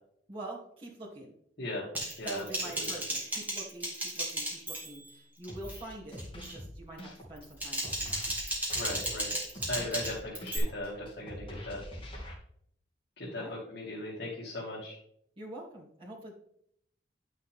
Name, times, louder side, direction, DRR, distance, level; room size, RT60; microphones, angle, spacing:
voice 1, 0.3-1.3 2.2-8.2 13.4-13.6 15.4-16.3, right 1 dB, 30° right, -7 dB, 2.7 m, -45 dB
voice 2, 1.6-1.9 2.2-2.4 2.8-2.9 8.7-9.3 9.7-11.8 13.2-15.0, left 1 dB, 65° left, -5 dB, 2.2 m, -38 dB
Typing, 1.9-5.1 5.4-5.8 6.2-6.6 7.4-10.6, right 1 dB, 10° right, 2.0 m, -35 dB
sound 1, 5.5-12.3, equal, 30° left, 2.4 m, -45 dB
10.5 x 6.3 x 3.6 m, 0.69 s
head